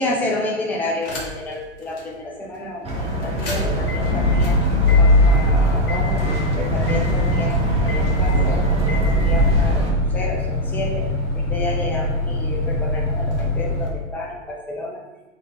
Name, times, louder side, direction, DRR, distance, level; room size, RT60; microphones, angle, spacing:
voice 1, 0.0-4.6 5.0-6.3 6.5-11.1 11.3-15.0, left 2 dB, 5° left, -2 dB, 0.5 m, -30 dB
sound 1, 1.0-1.5 2.0-2.1 3.2-13.9, left 1 dB, 45° left, 1.3 m, -21 dB
sound 2, 2.8-9.9, right 1 dB, 15° right, 1.0 m, -23 dB
3.9 x 3.2 x 4.2 m, 1.1 s
figure-of-eight pair, 105°, 38 cm